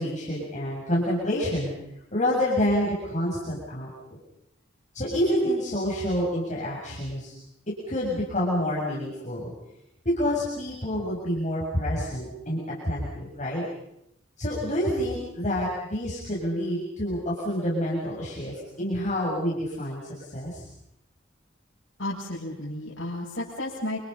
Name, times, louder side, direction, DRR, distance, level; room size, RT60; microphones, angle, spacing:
voice 1, 0.0-1.7 2.1-4.2 4.9-7.3 7.9-9.5 10.0-13.6 14.4-20.6, equal, 40° left, -5 dB, 7.6 m, -28 dB
voice 2, 22.0-24.1, left 1 dB, 70° left, -7 dB, 8.0 m, -33 dB
29.0 x 28.0 x 5.7 m, 0.80 s
head